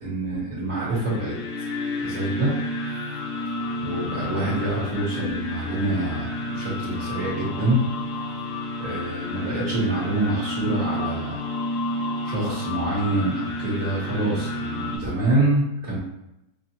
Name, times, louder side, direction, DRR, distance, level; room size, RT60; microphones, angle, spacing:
voice 1, 0.0-1.7 2.0-2.5 3.8-6.3 6.5-7.8 8.8-11.4 12.2-16.0, right 2 dB, 55° right, -8 dB, 1.4 m, -26 dB
sound 1, 0.7-15.0, left 1 dB, 90° left, 1.4 m, -31 dB
5.2 x 2.4 x 2.8 m, 0.87 s
omnidirectional pair, 1.9 m